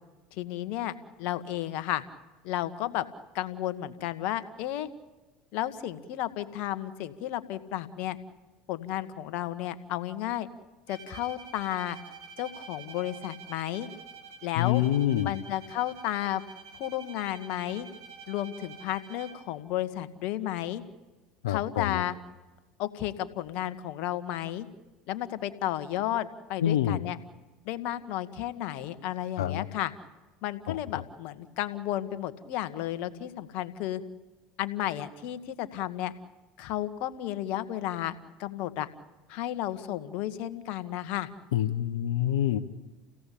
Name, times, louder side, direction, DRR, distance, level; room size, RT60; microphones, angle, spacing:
voice 1, 0.3-2.0 2.4-3.0 3.3-4.9 5.5-8.2 8.7-10.5 10.9-12.0 12.4-13.9 14.4-14.8 15.2-16.4 16.7-17.9 18.3-20.8 21.5-22.1 22.8-24.7 25.1-27.2 27.6-29.9 30.4-34.0 34.6-36.1 36.6-38.9 39.3-41.3, left 13 dB, 65° left, 12 dB, 1.7 m, -33 dB
Bowed string instrument, 10.9-19.6, right 6 dB, 80° right, 3.4 m, -48 dB
voice 2, 14.6-15.3 21.4-22.0 26.6-27.0 29.4-29.7 30.7-30.8 41.5-42.6, left 12 dB, 85° left, 12 dB, 1.0 m, -26 dB
29.5 x 17.0 x 8.6 m, 1.2 s
hypercardioid pair, 75°, 2 cm